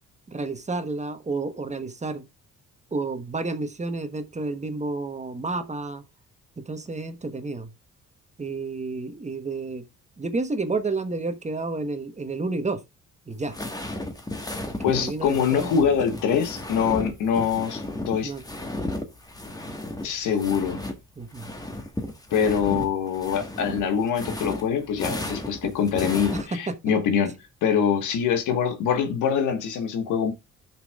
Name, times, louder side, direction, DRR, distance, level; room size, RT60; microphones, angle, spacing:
voice 1, 0.3-2.2 2.9-6.0 6.6-7.7 8.4-9.8 10.2-12.8 13.3-13.6 14.8-15.7 18.2-18.4 21.2-21.5 26.3-26.7, right 3 dB, 25° right, 1.1 m, -30 dB
sound 1, 13.3-21.0 21.2-26.4, left 1 dB, 10° left, 1.5 m, -34 dB
voice 2, 14.8-18.3 20.0-20.8 22.3-27.3 27.6-30.3, left 7 dB, 90° left, 1.5 m, -24 dB
15.0 x 6.0 x 2.4 m
cardioid pair, 90°, 30 cm